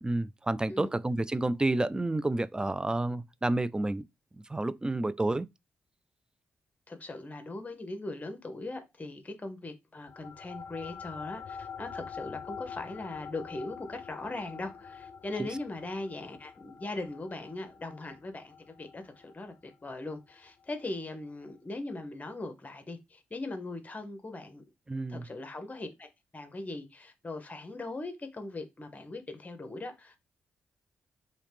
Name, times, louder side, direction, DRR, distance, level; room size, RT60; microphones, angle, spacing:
voice 1, 0.0-4.0 4.5-5.5 15.4-15.5 24.9-25.3, right 2 dB, 15° right, 0.3 m, -30 dB
voice 2, 6.9-24.6 25.1-26.1 26.3-30.3, left 2 dB, 30° left, 0.9 m, -40 dB
sound 1, 10.1-20.9, left 6 dB, 60° left, 0.4 m, -45 dB
3.1 x 2.8 x 3.3 m
hypercardioid pair, 40°, 5 cm